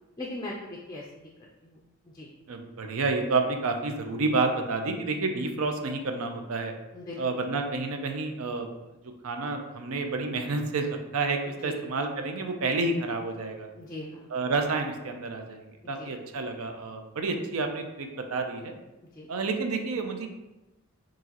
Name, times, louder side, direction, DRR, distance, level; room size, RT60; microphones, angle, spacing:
voice 1, 0.2-1.3 1.6-1.8 2.1-2.3 6.9-7.2 11.6-11.8 13.8-14.3 16.0-16.1 19.2-19.3, left 2 dB, 15° left, -2 dB, 0.4 m, -39 dB
voice 2, 2.5-6.7 7.2-8.7 9.2-13.7 14.3-18.8 19.3-20.3, right 3 dB, 80° right, 5 dB, 0.5 m, -29 dB
4.5 x 3.0 x 2.9 m, 1.0 s
head